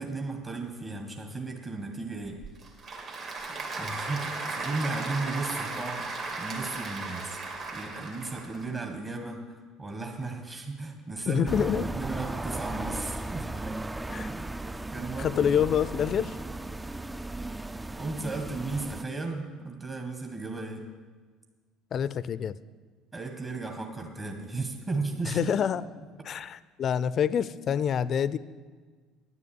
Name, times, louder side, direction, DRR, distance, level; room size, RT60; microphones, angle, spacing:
voice 1, 0.0-2.4 3.7-7.4 7.7-13.5 14.3-14.5 14.9-15.7 16.0-16.1 17.9-20.9 23.1-25.5, right 3 dB, 30° right, 3 dB, 1.6 m, -35 dB
Applause / Crowd, 2.2-8.7, right 3 dB, 50° right, 2.6 m, -36 dB
voice 2, 11.3-11.9 14.1-14.4 15.2-16.3 21.9-22.5 25.3-25.8 26.2-28.4, left 8 dB, 50° left, 17 dB, 0.4 m, -27 dB
sound 1, 11.5-19.0, right 2 dB, 15° right, 0.4 m, -36 dB
10.0 x 7.0 x 8.6 m, 1.5 s
hypercardioid pair, 65°, 0 cm